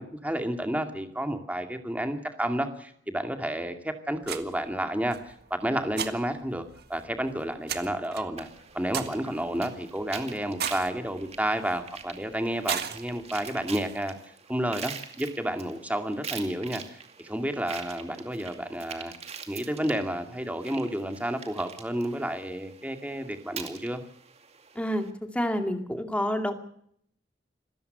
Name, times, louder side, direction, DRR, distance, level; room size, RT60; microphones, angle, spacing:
voice 1, 0.0-8.5 8.7-14.1 14.5-19.1 19.5-24.0, right 1 dB, 10° right, 6 dB, 2.2 m, -31 dB
sound 1, 4.2-14.0, right 8 dB, 60° right, 1.8 m, -39 dB
sound 2, 8.4-25.1, right 6 dB, 35° right, 2.4 m, -44 dB
voice 2, 24.8-25.1 25.3-26.5, equal, 5° left, 6 dB, 2.4 m, -28 dB
27.0 x 15.0 x 6.7 m, 0.68 s
head